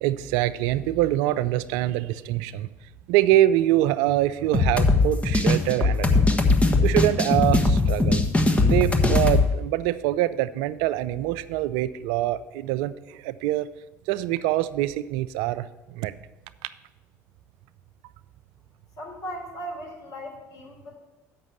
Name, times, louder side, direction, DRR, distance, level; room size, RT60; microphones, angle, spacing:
voice 1, 0.0-2.7 3.1-6.4 6.8-8.2 8.7-13.7 14.1-16.1 16.6-16.7, right 14 dB, 75° right, 15 dB, 0.4 m, -24 dB
sound 1, 4.5-9.5, left 3 dB, 15° left, 1.2 m, -20 dB
voice 2, 19.0-21.0, equal, 50° left, 0 dB, 3.7 m, -37 dB
7.7 x 6.0 x 6.8 m, 1.1 s
hypercardioid pair, 70°, 8 cm